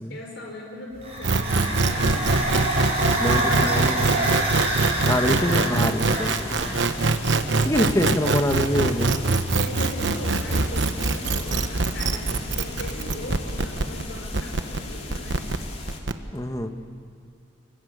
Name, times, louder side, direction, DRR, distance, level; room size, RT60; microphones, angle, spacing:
voice 1, 0.1-2.3 2.9-4.1 5.4-5.9 8.0-8.1 9.5-15.5, left 1 dB, 60° left, 0 dB, 5.0 m, -38 dB
sound 1, 1.0-7.1, right 1 dB, 30° right, 6.9 m, -27 dB
sound 2, 1.2-16.1, right 3 dB, 65° right, 1.1 m, -23 dB
sound 3, 1.5-16.0, left 2 dB, 35° left, 2.7 m, -37 dB
voice 2, 3.1-4.4 5.0-6.8 7.6-9.2 16.3-16.7, left 1 dB, 15° left, 7 dB, 1.2 m, -26 dB
22.0 x 22.0 x 9.4 m, 2.3 s
head